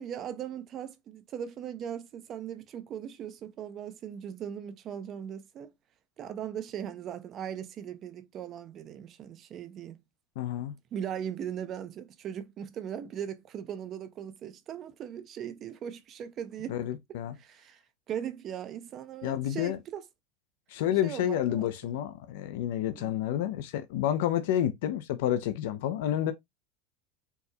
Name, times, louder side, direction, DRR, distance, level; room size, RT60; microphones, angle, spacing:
voice 1, 0.0-5.7 6.2-10.0 10.9-16.8 17.4-17.8 18.1-20.0 21.0-21.7 22.8-23.2, right 9 dB, 30° right, 0.4 m, -39 dB
voice 2, 10.4-10.7 16.7-17.3 19.2-19.8 20.7-26.3, left 11 dB, 75° left, 0.4 m, -29 dB
4.5 x 2.2 x 2.6 m
supercardioid pair, 165°, 0 cm